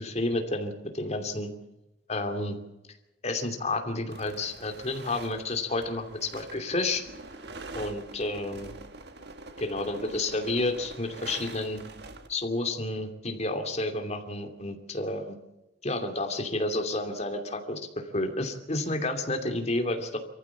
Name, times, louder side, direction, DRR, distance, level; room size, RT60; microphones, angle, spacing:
voice 1, 0.0-1.5 2.1-2.6 3.2-7.0 7.7-8.7 9.6-11.8 12.3-15.4 15.8-17.8 18.1-20.2, left 2 dB, 35° left, 5 dB, 2.7 m, -30 dB
sound 1, 4.1-12.3, right 2 dB, 60° right, 1.9 m, -45 dB
24.5 x 15.0 x 7.2 m, 0.97 s
head